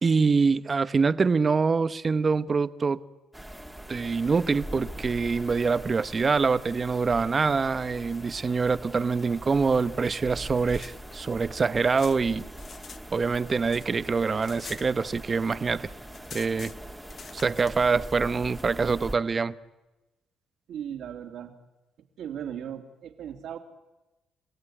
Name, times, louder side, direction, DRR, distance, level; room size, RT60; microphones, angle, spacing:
voice 1, 0.0-3.0 3.9-12.4 13.1-15.9 16.3-16.7 17.3-19.5, right 4 dB, 35° right, 0.9 m, -25 dB
sound 1, 3.3-19.2, right 1 dB, 5° right, 2.1 m, -42 dB
sound 2, 10.4-13.0 13.3-15.5 15.8-15.9 16.1-17.9, left 6 dB, 45° left, 1.2 m, -46 dB
voice 2, 20.7-21.5 22.2-23.6, right 9 dB, 75° right, 2.7 m, -37 dB
29.5 x 15.5 x 9.9 m
cardioid pair, 95°, 0 cm